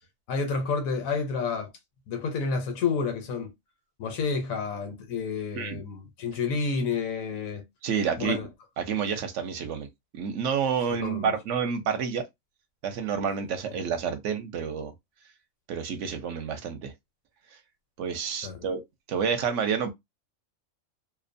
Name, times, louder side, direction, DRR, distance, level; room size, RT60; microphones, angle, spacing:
voice 1, 0.3-1.7 2.1-3.5 4.0-7.6 8.2-8.5 11.0-11.3 18.4-18.7, left 5 dB, 90° left, 1.1 m, -30 dB
voice 2, 7.8-8.4 8.8-9.9 10.1-12.2 12.8-14.9 15.7-16.9 18.0-18.8 19.1-19.9, right 6 dB, 70° right, 0.9 m, -29 dB
2.6 x 2.1 x 2.5 m
omnidirectional pair, 1.4 m